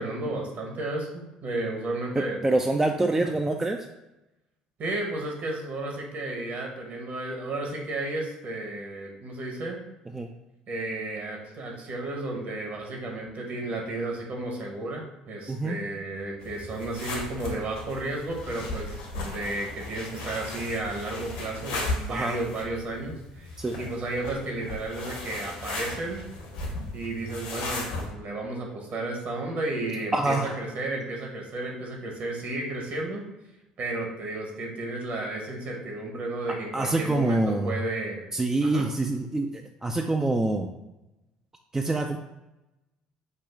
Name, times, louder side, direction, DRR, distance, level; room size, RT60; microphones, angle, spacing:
voice 1, 0.0-2.4 4.8-9.8 10.7-23.5 23.8-26.3 26.9-33.2 33.8-38.3 38.6-38.8, right 2 dB, 50° right, 0 dB, 1.3 m, -33 dB
voice 2, 2.2-3.9 10.1-10.3 15.5-15.8 22.1-22.4 23.6-23.8 30.1-30.6 36.7-37.8 38.3-40.7 41.7-42.2, right 2 dB, 15° right, 4 dB, 0.4 m, -26 dB
sound 1, 16.4-28.1, left 2 dB, 75° left, 1.3 m, -36 dB
5.3 x 2.4 x 3.7 m, 0.98 s
hypercardioid pair, 60°, 4 cm